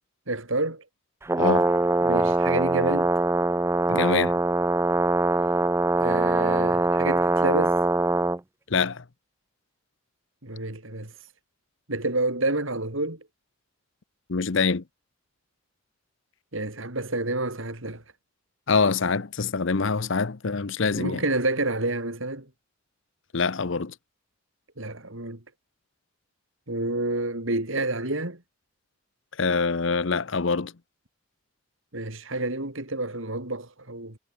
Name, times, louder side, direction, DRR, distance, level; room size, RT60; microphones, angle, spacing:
voice 1, 0.3-0.8 2.0-3.1 6.0-7.8 10.4-11.1 11.9-13.3 16.5-18.0 21.0-22.5 24.8-25.4 26.7-28.4 31.9-34.2, right 2 dB, 65° right, 3.9 m, -29 dB
Brass instrument, 1.2-8.4, right 2 dB, 10° right, 0.3 m, -22 dB
voice 2, 1.4-1.7 3.9-4.4 8.7-9.0 14.3-14.8 18.7-21.2 23.3-23.9 29.4-30.7, left 4 dB, 60° left, 0.8 m, -25 dB
head